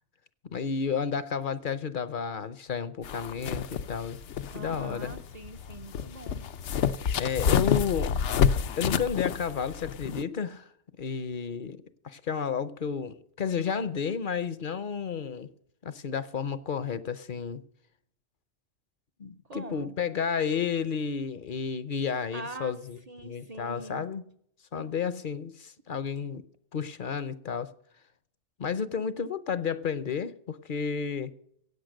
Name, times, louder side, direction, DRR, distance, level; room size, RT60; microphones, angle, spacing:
voice 1, 0.4-4.2 4.5-5.1 7.1-8.1 8.8-10.7 11.0-15.5 15.8-17.6 19.2-24.2 24.7-26.4 26.7-27.7 28.6-31.3, left 6 dB, 50° left, 0.8 m, -32 dB
sound 1, 3.0-10.2, left 7 dB, 75° left, 1.0 m, -29 dB
voice 2, 4.5-6.5 19.4-20.0 22.3-22.7 23.1-24.1 24.7-24.8, right 2 dB, 40° right, 0.7 m, -43 dB
16.5 x 8.6 x 6.4 m
omnidirectional pair, 1.2 m